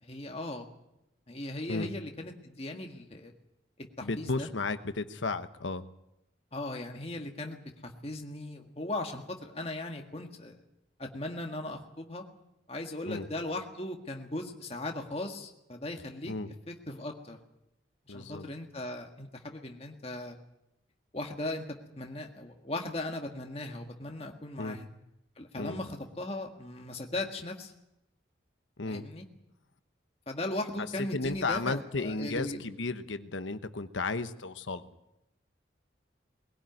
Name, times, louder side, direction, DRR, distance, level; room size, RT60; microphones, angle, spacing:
voice 1, 0.0-0.7 1.3-3.3 4.0-4.5 6.5-10.6 11.0-12.2 12.7-16.3 16.7-17.4 18.1-20.4 21.1-21.6 22.0-24.9 25.4-27.7 28.9-29.2 30.3-32.6, left 2 dB, 30° left, 3 dB, 1.7 m, -38 dB
voice 2, 4.0-5.8 13.0-13.2 16.2-16.5 18.1-18.4 24.6-24.8 25.5-25.8 28.8-29.0 31.1-34.9, left 3 dB, 85° left, 11 dB, 1.1 m, -34 dB
20.5 x 17.0 x 9.3 m, 0.88 s
head